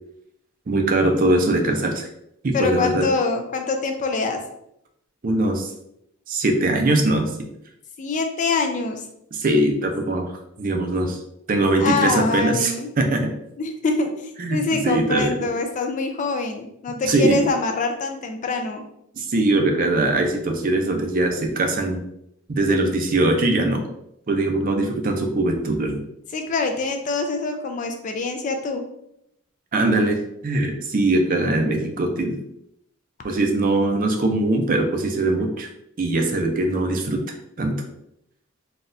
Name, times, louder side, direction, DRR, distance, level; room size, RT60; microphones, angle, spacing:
voice 1, 0.7-2.1 2.4-3.1 5.2-5.7 6.3-7.5 9.3-10.3 10.6-11.2 11.5-13.4 14.4-15.5 17.0-17.4 19.1-22.0 22.5-23.8 24.3-26.0 29.7-32.4 33.2-35.7 36.0-37.2 37.6-37.8, right 2 dB, 40° right, 4 dB, 0.4 m, -21 dB
voice 2, 2.5-4.4 8.0-9.0 11.8-12.9 13.6-18.8 26.3-28.8, left 3 dB, 35° left, 5 dB, 0.3 m, -25 dB
4.0 x 2.3 x 2.5 m, 0.78 s
head